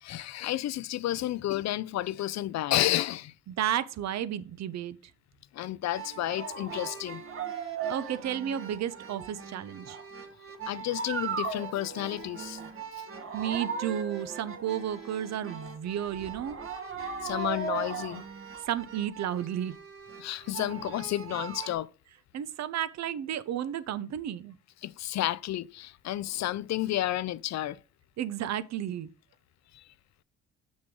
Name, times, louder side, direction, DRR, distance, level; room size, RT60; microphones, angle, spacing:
voice 1, 0.0-3.3 5.5-7.2 10.7-12.6 17.2-18.2 20.2-21.9 24.8-27.8 29.7-29.8, left 14 dB, 65° left, 0.5 m, -31 dB
voice 2, 3.5-5.0 7.9-10.0 13.3-16.6 18.6-19.8 22.3-24.6 28.2-29.1, right 10 dB, 60° right, 0.7 m, -32 dB
sound 1, 5.9-21.7, right 5 dB, 45° right, 1.5 m, -38 dB
6.3 x 6.2 x 3.7 m
cardioid pair, 90°, 30 cm